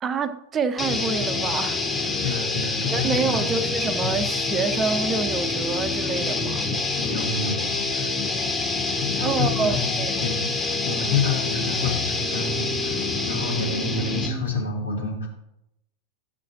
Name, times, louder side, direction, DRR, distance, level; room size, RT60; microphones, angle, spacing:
voice 1, 0.0-2.2 2.9-6.7 9.2-10.3, right 5 dB, 25° right, 0.5 m, -27 dB
sound 1, 0.8-14.5, left 3 dB, 10° left, 0.9 m, -26 dB
voice 2, 2.2-3.5 4.0-4.2 7.0-8.2 9.0-15.3, left 4 dB, 75° left, 2.7 m, -29 dB
12.5 x 6.3 x 3.0 m
figure-of-eight pair, 90°, 0 cm